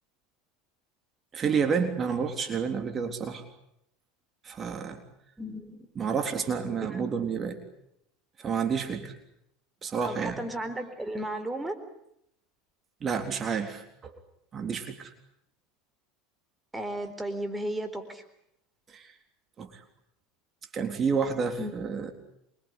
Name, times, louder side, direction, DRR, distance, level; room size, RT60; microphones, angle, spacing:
voice 1, 1.3-3.4 4.4-5.0 6.0-7.6 8.4-9.1 9.8-10.4 13.0-14.2 14.5-15.1 18.9-19.1 19.6-19.8 20.7-22.1, right 6 dB, 35° right, 7 dB, 3.8 m, -30 dB
voice 2, 5.4-5.9 6.9-7.0 10.0-11.8 16.7-18.2 21.6-21.7, right 1 dB, 10° right, 10 dB, 4.2 m, -34 dB
26.5 x 24.5 x 8.4 m, 0.76 s
hypercardioid pair, 85°, 0 cm